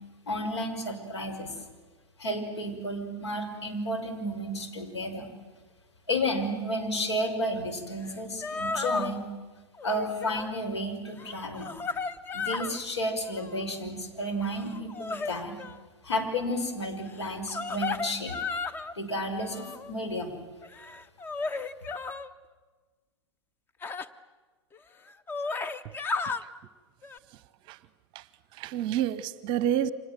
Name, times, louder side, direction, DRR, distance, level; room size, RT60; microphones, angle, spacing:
voice 1, 0.3-1.5 2.2-5.3 6.1-9.2 9.8-11.7 12.3-15.6 16.0-18.4 18.9-20.3, equal, 65° left, 5.8 m, -32 dB
sound 1, 8.1-8.2 8.4-9.1 9.8-10.5 11.1-12.8 13.2-13.7 14.4-15.8 17.2-18.9 19.4-19.9 20.6-22.3 23.8-24.1 24.7-24.8 25.1-26.4 27.0-27.2, left 4 dB, 15° left, 1.0 m, -34 dB
voice 2, 28.5-29.9, right 11 dB, 30° right, 1.0 m, -29 dB
30.0 x 26.0 x 7.6 m
figure-of-eight pair, 100°, 15 cm